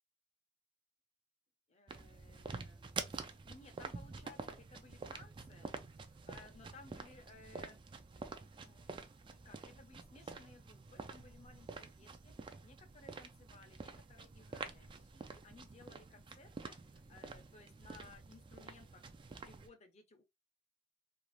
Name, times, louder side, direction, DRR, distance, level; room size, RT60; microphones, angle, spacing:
voice 1, 1.7-3.0 3.3-5.7 6.3-7.8 8.4-12.3 12.6-19.0 19.4-20.2, left 3 dB, 40° left, 0.6 m, -60 dB
sound 1, 1.9-19.7, right 4 dB, 30° right, 0.3 m, -48 dB
2.5 x 2.3 x 3.1 m
head